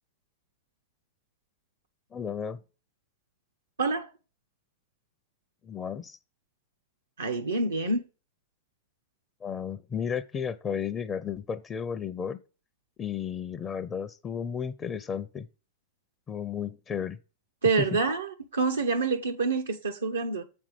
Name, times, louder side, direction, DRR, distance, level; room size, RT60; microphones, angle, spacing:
voice 1, 2.1-2.6 5.6-6.2 9.4-12.4 13.0-15.5 16.3-17.2 17.8-18.0, left 7 dB, 25° left, 0.5 m, -33 dB
voice 2, 3.8-4.1 7.2-8.0 17.6-20.4, right 4 dB, 85° right, 0.7 m, -27 dB
7.3 x 5.3 x 4.8 m
hypercardioid pair, 100°, 0 cm